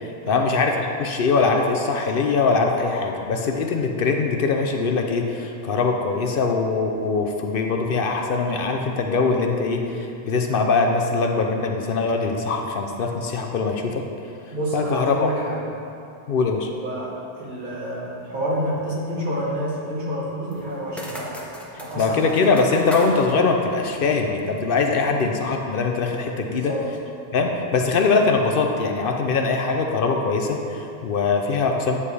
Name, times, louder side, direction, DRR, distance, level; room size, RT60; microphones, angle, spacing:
voice 1, 0.3-14.0 14.7-15.3 16.3-16.7 22.0-26.7 27.3-32.0, left 4 dB, 65° left, 3 dB, 0.7 m, -22 dB
voice 2, 14.5-15.6 16.7-21.4 21.8-22.3 24.7-24.8 26.4-26.9, equal, 45° right, -6 dB, 1.6 m, -29 dB
sound 1, 20.5-24.7, equal, ahead, 0.8 m, -38 dB
9.8 x 7.3 x 3.3 m, 2.7 s
omnidirectional pair, 1.1 m